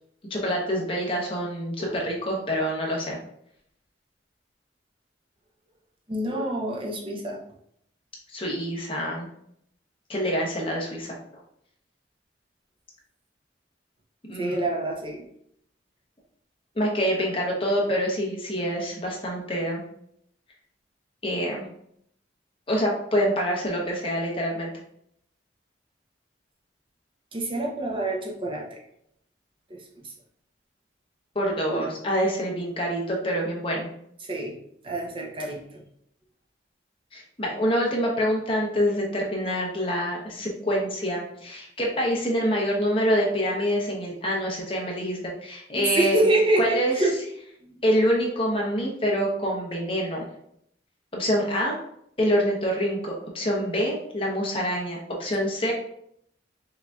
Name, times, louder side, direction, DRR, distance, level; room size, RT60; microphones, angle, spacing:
voice 1, 0.3-3.2 8.3-9.3 10.1-11.2 14.3-14.6 16.7-19.8 21.2-21.7 22.7-24.7 31.3-33.9 37.1-46.3 46.6-47.0 47.8-50.3 51.1-51.8 52.2-55.7, equal, 30° left, -2 dB, 0.9 m, -26 dB
voice 2, 6.1-7.4 14.4-15.3 27.3-28.8 29.7-30.1 31.7-31.9 34.2-34.6 34.8-35.8 45.8-47.2 47.6-47.8, right 2 dB, 30° right, -1 dB, 0.7 m, -27 dB
5.7 x 2.8 x 2.3 m, 0.72 s
head